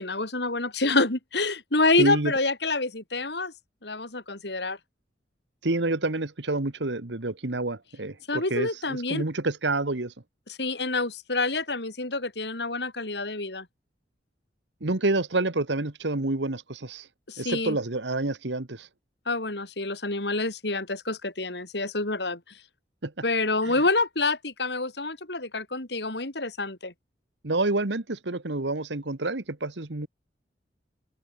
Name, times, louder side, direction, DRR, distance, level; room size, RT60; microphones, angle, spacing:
voice 1, 0.0-3.5 3.8-4.8 8.3-9.2 10.5-13.7 17.3-17.8 19.3-22.6 23.2-26.9, left 3 dB, 65° left, 4.0 m, -27 dB
voice 2, 2.0-2.3 5.6-10.1 14.8-17.1 17.4-18.9 23.0-23.1 27.4-30.1, right 2 dB, 80° right, 1.6 m, -28 dB
open air
head